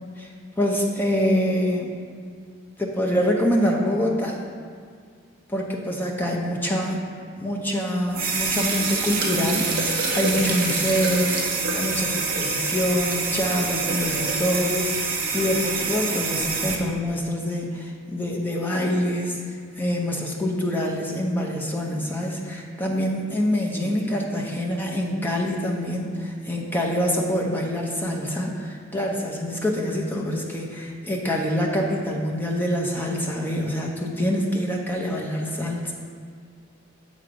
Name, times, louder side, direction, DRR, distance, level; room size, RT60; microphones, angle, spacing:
voice 1, 0.6-1.9 2.8-4.4 5.5-7.0 7.4-9.7 10.1-19.4 19.7-35.9, equal, 10° left, -1 dB, 0.6 m, -25 dB
sound 1, 8.1-16.8, right 4 dB, 45° right, 0.8 m, -26 dB
7.2 x 3.8 x 5.1 m, 2.1 s
head